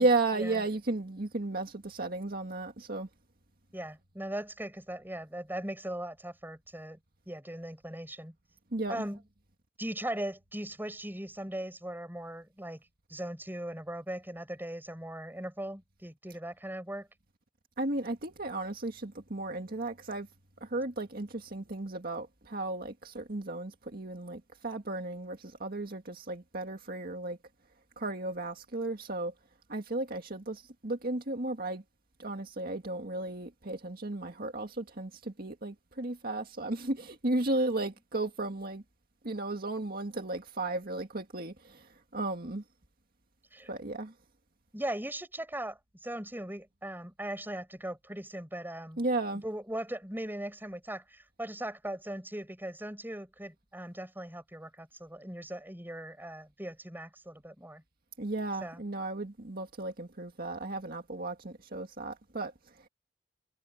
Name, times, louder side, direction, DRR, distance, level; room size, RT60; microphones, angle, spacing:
voice 1, 0.0-3.1 8.7-9.0 17.8-20.3 20.6-27.4 28.0-29.3 29.7-31.8 32.2-38.8 39.2-42.6 43.7-44.1 49.0-49.4 58.2-62.9, right 2 dB, 55° right, 2.0 m, -34 dB
voice 2, 3.7-7.0 7.3-8.3 8.9-9.2 9.8-12.8 13.1-17.1 43.5-43.7 44.7-49.0 49.4-57.8 58.6-58.8, right 1 dB, 10° right, 6.9 m, -39 dB
head